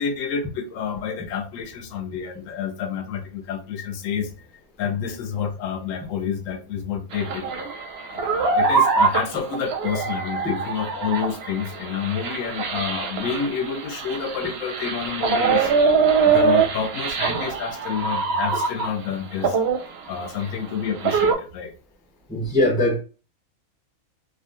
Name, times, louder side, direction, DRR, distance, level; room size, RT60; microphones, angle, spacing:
voice 1, 0.0-4.3 4.8-7.7 8.1-15.7 16.2-19.6 20.1-21.7, left 7 dB, 70° left, 0.9 m, -29 dB
sound 1, 7.1-19.1 19.4-21.3, right 5 dB, 60° right, 0.7 m, -23 dB
voice 2, 22.3-23.0, left 1 dB, 5° right, 0.5 m, -21 dB
3.5 x 2.2 x 2.5 m
omnidirectional pair, 1.5 m